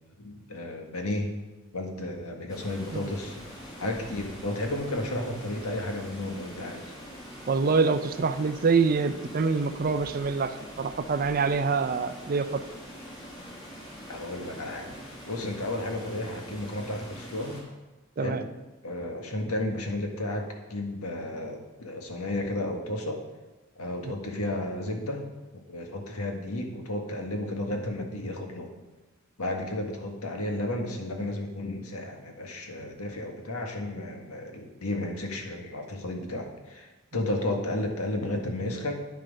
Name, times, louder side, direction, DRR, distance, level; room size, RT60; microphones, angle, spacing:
voice 1, 0.2-1.3 1.7-3.5 3.8-6.9 14.1-17.6 18.2-18.5 18.8-23.2 23.8-25.2 25.7-28.7 29.4-38.9, left 1 dB, 90° left, 2 dB, 1.6 m, -33 dB
Water, 2.5-17.6, equal, 15° left, 3.7 m, -44 dB
voice 2, 7.5-12.6 18.2-18.4, right 4 dB, 40° right, 11 dB, 0.5 m, -25 dB
9.6 x 7.6 x 5.2 m, 1.1 s
head